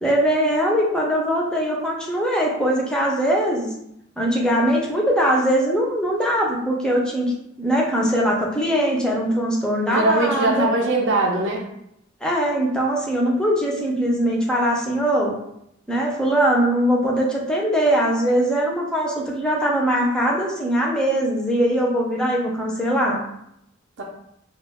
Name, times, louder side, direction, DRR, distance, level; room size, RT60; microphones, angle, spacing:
voice 1, 0.0-3.7 4.2-7.3 7.6-10.7 12.2-15.3 15.9-23.2, equal, 5° left, -3 dB, 0.4 m, -21 dB
voice 2, 9.8-11.6 24.0-24.1, right 2 dB, 65° right, -1 dB, 0.5 m, -21 dB
2.2 x 2.2 x 3.4 m, 0.77 s
head